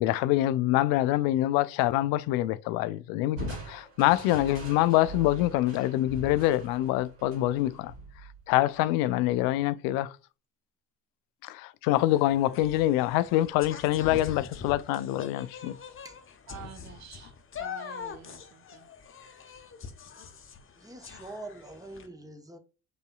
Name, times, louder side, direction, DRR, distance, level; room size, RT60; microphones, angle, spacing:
voice 1, 0.0-7.9 8.5-10.2 11.4-15.8, left 15 dB, 50° left, 0.4 m, -25 dB
Crushing, 3.4-8.8, right 2 dB, 70° right, 2.4 m, -42 dB
sound 1, 11.9-22.1, left 6 dB, 30° left, 0.8 m, -43 dB
voice 2, 16.5-18.9, right 10 dB, 40° right, 0.5 m, -48 dB
voice 3, 20.7-22.6, right 2 dB, 10° right, 0.9 m, -44 dB
5.3 x 4.0 x 2.3 m
figure-of-eight pair, 50°, 46 cm